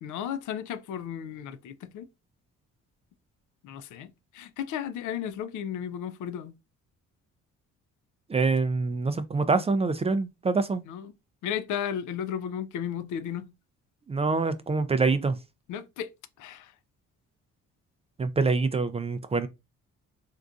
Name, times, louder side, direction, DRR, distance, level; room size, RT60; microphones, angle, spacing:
voice 1, 0.0-2.1 3.6-6.5 10.9-11.1 11.4-13.5 15.7-16.1 16.4-16.7, left 9 dB, 80° left, 0.5 m, -34 dB
voice 2, 8.3-10.8 14.1-15.4 18.2-19.5, right 4 dB, 20° right, 0.3 m, -25 dB
3.7 x 2.5 x 2.3 m
cardioid pair, 90°, 30 cm